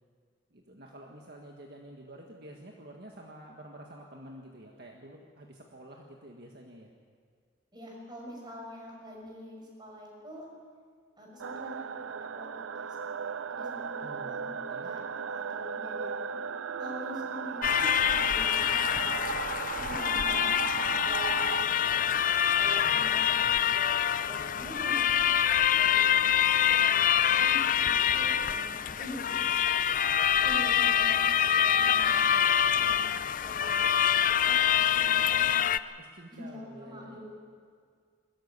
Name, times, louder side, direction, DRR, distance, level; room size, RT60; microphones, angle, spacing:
voice 1, 0.5-6.9 14.0-14.9 22.7-23.1 24.3-24.9 36.0-37.2, right 1 dB, 55° right, 0 dB, 1.7 m, -49 dB
voice 2, 7.7-10.5 11.2-14.5 14.8-16.4 16.8-22.1 22.5-25.3 25.7-29.6 30.4-32.4 32.8-33.1 33.4-34.2 34.5-35.7 36.3-37.2, left 1 dB, 20° right, -2 dB, 6.1 m, -45 dB
sound 1, 11.4-21.6, right 6 dB, 85° right, 0.5 m, -36 dB
sound 2, 17.6-35.8, left 9 dB, 45° left, 0.4 m, -25 dB
21.5 x 14.5 x 9.8 m, 2.1 s
head